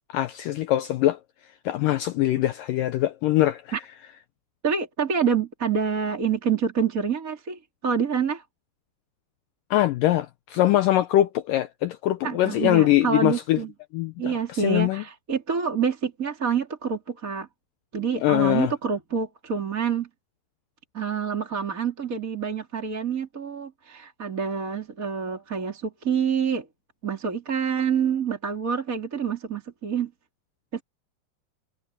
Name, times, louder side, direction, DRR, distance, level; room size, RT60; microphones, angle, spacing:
voice 1, 0.1-1.2 1.7-3.8 9.7-13.6 13.9-15.0 18.2-18.7, left 14 dB, 80° left, 2.0 m, -23 dB
voice 2, 4.6-8.4 12.2-13.7 14.2-17.5 17.9-20.1 20.9-26.7 27.0-30.1 30.7-30.8, right 6 dB, 25° right, 2.9 m, -27 dB
omnidirectional pair, 4.6 m